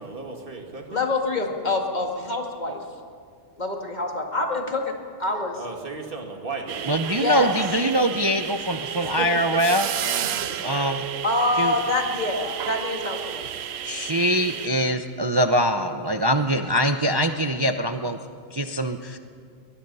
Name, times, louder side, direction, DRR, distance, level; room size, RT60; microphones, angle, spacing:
voice 1, 0.0-1.1 5.6-7.0 9.0-10.8, right 4 dB, 45° right, 2 dB, 2.4 m, -35 dB
voice 2, 0.9-2.8 3.6-4.9 5.2-5.6 7.1-7.5 11.2-13.4, left 2 dB, 35° left, 2 dB, 2.2 m, -25 dB
sound 1, 6.7-14.7, right 9 dB, 65° right, 0.9 m, -32 dB
voice 3, 6.9-9.9 10.6-11.0 11.6-11.7 13.8-18.2 18.5-19.2, equal, 25° right, 7 dB, 0.6 m, -23 dB
21.5 x 21.5 x 5.5 m, 2.2 s
omnidirectional pair, 1.3 m